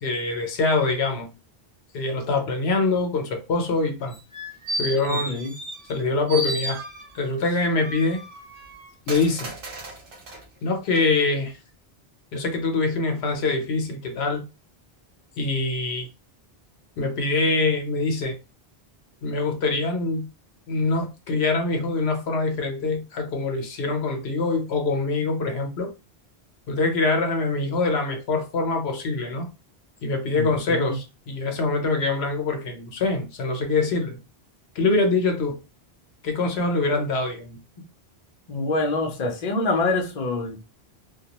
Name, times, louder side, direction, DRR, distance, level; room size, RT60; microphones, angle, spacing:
voice 1, 0.0-1.3 1.9-4.2 4.8-5.4 5.9-6.8 7.1-8.2 9.1-9.5 10.6-11.5 12.3-14.4 15.4-16.1 17.0-18.3 19.2-20.3 20.7-25.9 26.7-29.5 30.0-34.2 34.7-35.6 36.2-37.6, left 3 dB, 75° left, 0.9 m, -24 dB
sound 1, 4.1-6.0 6.3-7.3 7.8-10.4 10.9-11.0, right 1 dB, 60° right, 0.9 m, -33 dB
voice 2, 5.1-5.5 30.4-31.0 38.5-40.7, left 2 dB, 45° left, 0.6 m, -26 dB
2.2 x 2.2 x 2.8 m
omnidirectional pair, 1.1 m